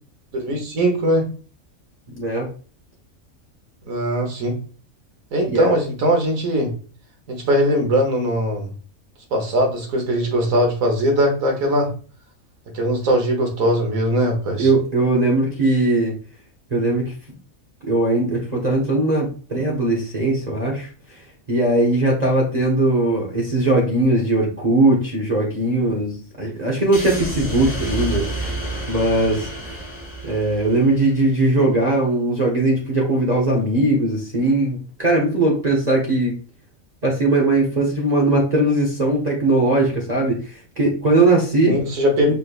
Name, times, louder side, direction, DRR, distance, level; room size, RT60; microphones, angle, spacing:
voice 1, 0.3-1.2 3.9-4.6 5.3-6.7 7.3-8.7 9.3-11.9 12.7-14.7 41.6-42.3, equal, 80° right, 2 dB, 1.5 m, -20 dB
voice 2, 2.1-2.5 5.5-5.7 14.6-16.1 16.7-17.1 17.8-20.9 21.5-28.6 28.9-29.5 30.2-36.4 37.0-41.8 42.2-42.3, right 2 dB, 35° right, -3 dB, 0.9 m, -19 dB
sound 1, 26.9-31.3, right 1 dB, 30° left, 1.3 m, -29 dB
5.2 x 3.2 x 2.4 m, 0.38 s
omnidirectional pair, 1.4 m